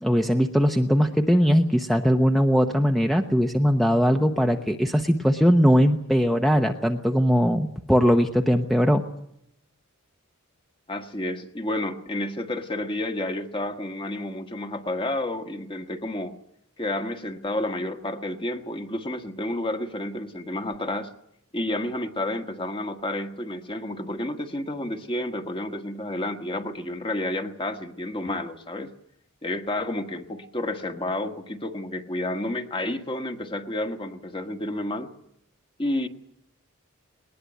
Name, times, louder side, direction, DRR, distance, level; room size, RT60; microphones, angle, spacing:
voice 1, 0.0-9.0, equal, ahead, 4 dB, 0.9 m, -20 dB
voice 2, 10.9-16.3 16.8-21.1 21.5-28.9 29.4-35.1 35.8-36.1, left 1 dB, 25° left, 6 dB, 1.6 m, -30 dB
20.0 x 20.0 x 9.3 m, 0.74 s
head